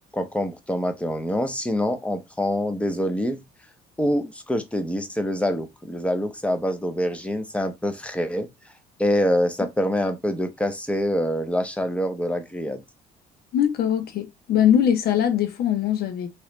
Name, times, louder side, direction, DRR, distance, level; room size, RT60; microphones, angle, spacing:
voice 1, 0.1-3.4 4.0-8.5 9.0-12.8, left 1 dB, 5° left, 0.6 m, -25 dB
voice 2, 13.5-16.3, left 9 dB, 70° left, 0.9 m, -21 dB
3.0 x 2.9 x 3.0 m
cardioid pair, 110°, 17 cm